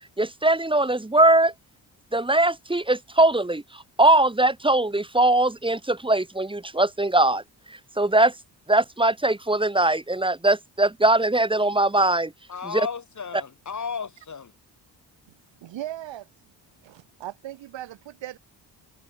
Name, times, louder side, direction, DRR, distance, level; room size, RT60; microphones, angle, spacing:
voice 1, 0.2-1.5 2.1-3.6 4.0-7.4 8.0-8.3 8.7-12.3 12.6-12.9, right 2 dB, 10° right, 1.3 m, -21 dB
voice 2, 12.5-14.5, left 6 dB, 40° left, 2.3 m, -33 dB
voice 3, 15.6-16.3 16.8-18.4, right 13 dB, 80° right, 1.7 m, -37 dB
cardioid pair, 65°, 43 cm